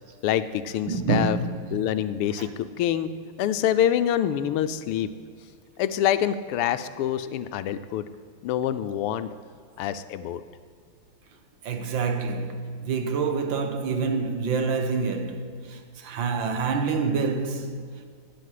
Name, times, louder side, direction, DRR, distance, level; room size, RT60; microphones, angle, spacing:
voice 1, 0.2-1.4 1.7-3.1 3.4-5.1 5.8-8.0 8.4-9.3 9.8-10.4, left 10 dB, 85° left, 1.6 m, -26 dB
voice 2, 0.9-1.6 2.4-2.5 11.6-18.1, right 4 dB, 65° right, 1.6 m, -27 dB
12.0 x 9.8 x 8.4 m
omnidirectional pair, 2.4 m